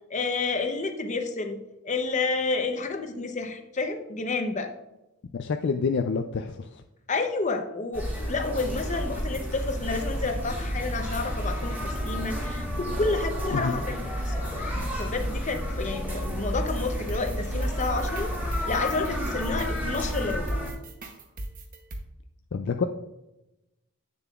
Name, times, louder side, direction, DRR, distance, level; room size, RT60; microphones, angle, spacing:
voice 1, 0.1-1.6 1.8-4.7 7.1-14.3 14.7-18.3 18.7-20.6, left 3 dB, 35° left, 6 dB, 0.7 m, -30 dB
voice 2, 5.3-6.8 13.5-13.7 22.5-22.9, left 5 dB, 50° left, 6 dB, 0.4 m, -27 dB
sound 1, 7.9-20.7, equal, 5° right, 1.6 m, -31 dB
sound 2, 17.1-22.0, right 1 dB, 40° right, 0.8 m, -38 dB
8.8 x 6.8 x 2.4 m, 0.95 s
head